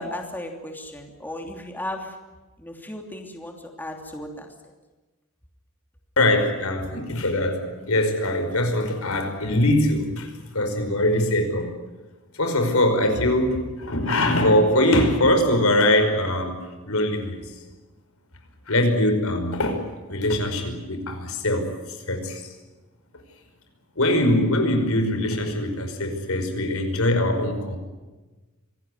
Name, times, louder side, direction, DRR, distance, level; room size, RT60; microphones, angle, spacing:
voice 1, 0.0-2.2 2.6-4.7, left 1 dB, 10° left, 2 dB, 3.0 m, -35 dB
voice 2, 6.2-11.8 12.3-16.6 16.8-17.5 18.7-19.8 20.1-21.7 22.1-22.5 24.0-27.8, left 1 dB, 70° left, 6 dB, 5.3 m, -22 dB
25.5 x 18.5 x 9.5 m, 1.2 s
head